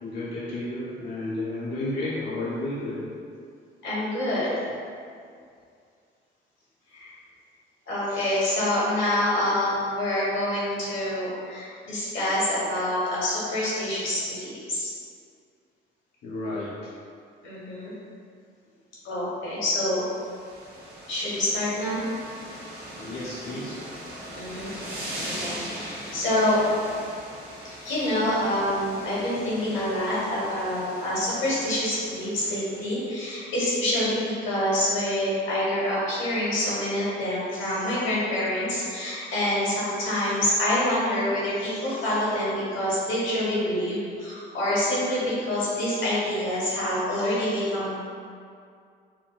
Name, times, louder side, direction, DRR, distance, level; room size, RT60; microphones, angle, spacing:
voice 1, 0.0-3.1 16.2-16.9 23.0-23.8, left 2 dB, 55° left, -7 dB, 0.5 m, -32 dB
voice 2, 3.8-4.5 6.9-7.1 7.9-14.9 17.4-17.9 19.0-20.0 21.1-22.0 24.3-24.7 25.2-26.6 27.6-47.9, left 1 dB, 85° left, -8 dB, 1.2 m, -26 dB
sound 1, 19.9-33.1, right 1 dB, 50° right, 1.1 m, -40 dB
4.0 x 2.0 x 2.3 m, 2.3 s
cardioid pair, 90°, 20 cm